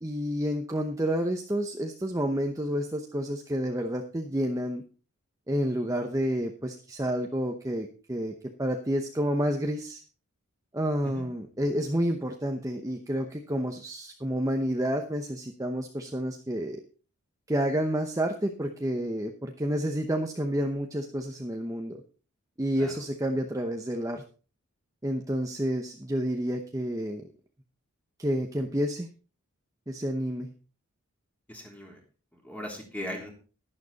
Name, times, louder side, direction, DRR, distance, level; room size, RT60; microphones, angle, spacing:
voice 1, 0.0-4.8 5.5-10.0 10.7-16.8 17.5-22.0 22.6-24.2 25.0-27.3 28.2-29.1 29.9-30.5, equal, 15° right, 4 dB, 0.8 m, -29 dB
voice 2, 31.5-32.0 32.4-33.3, equal, 5° left, 1 dB, 3.1 m, -39 dB
11.5 x 11.0 x 4.1 m, 0.37 s
head